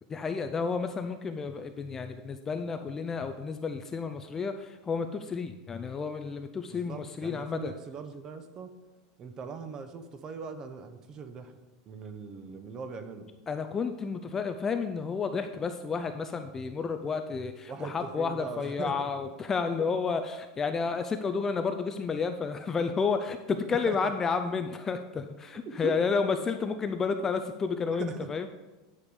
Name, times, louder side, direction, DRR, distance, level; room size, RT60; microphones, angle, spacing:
voice 1, 0.1-7.7 13.5-28.5, left 5 dB, 15° left, 7 dB, 0.4 m, -31 dB
voice 2, 6.7-8.7 9.2-11.5 11.9-13.3 17.7-18.9 19.8-19.9 23.9-24.1 25.7-26.0 27.9-28.2, right 5 dB, 25° right, 9 dB, 0.8 m, -40 dB
9.8 x 4.9 x 5.3 m, 1.1 s
supercardioid pair, 155°, 2 cm